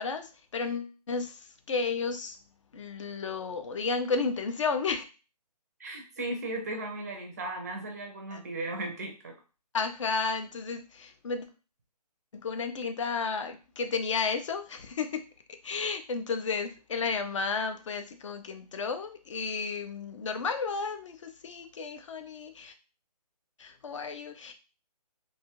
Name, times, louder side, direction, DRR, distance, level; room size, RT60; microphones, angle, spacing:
voice 1, 0.0-2.4 2.7-5.0 8.3-8.4 9.7-11.5 12.3-15.2 15.6-22.7 23.6-24.5, left 4 dB, 50° left, 7 dB, 0.4 m, -32 dB
voice 2, 5.8-9.3, right 2 dB, 25° right, 2 dB, 0.4 m, -36 dB
2.7 x 2.3 x 2.9 m, 0.33 s
hypercardioid pair, 160°, 21 cm